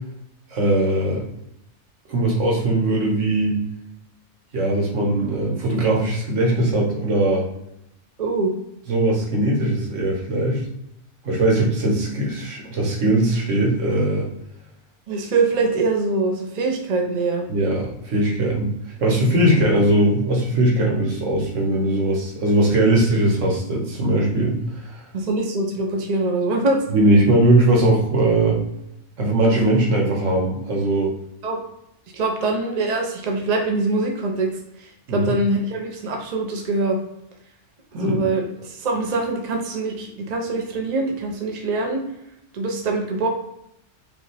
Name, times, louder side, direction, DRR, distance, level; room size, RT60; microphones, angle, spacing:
voice 1, 0.5-1.2 2.1-3.6 4.5-7.5 8.9-10.6 11.2-14.3 17.5-18.7 19.0-24.6 24.9-25.0 26.9-28.6 29.2-31.1 35.1-35.3 37.9-38.2, right 1 dB, 90° right, -1 dB, 1.5 m, -20 dB
voice 2, 8.2-8.5 15.1-17.5 25.1-26.8 31.4-31.6 32.1-34.5 34.8-37.0 37.9-42.0 42.5-43.3, right 3 dB, 40° right, 2 dB, 0.7 m, -23 dB
5.1 x 2.4 x 3.3 m, 0.80 s
omnidirectional pair, 1.2 m